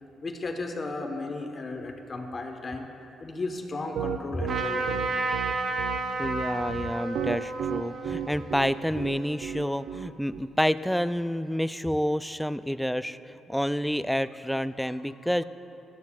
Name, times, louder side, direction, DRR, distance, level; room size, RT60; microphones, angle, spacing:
voice 1, 0.2-2.9 3.2-5.1 14.5-14.6, left 3 dB, 35° left, 3 dB, 1.2 m, -35 dB
Piano, 3.9-10.4, right 9 dB, 75° right, 0.4 m, -33 dB
Trumpet, 4.5-10.0, right 3 dB, 50° right, 1.0 m, -33 dB
voice 2, 6.2-15.4, equal, ahead, 13 dB, 0.3 m, -29 dB
16.5 x 11.5 x 2.4 m, 2.9 s
cardioid pair, 90°, 0 cm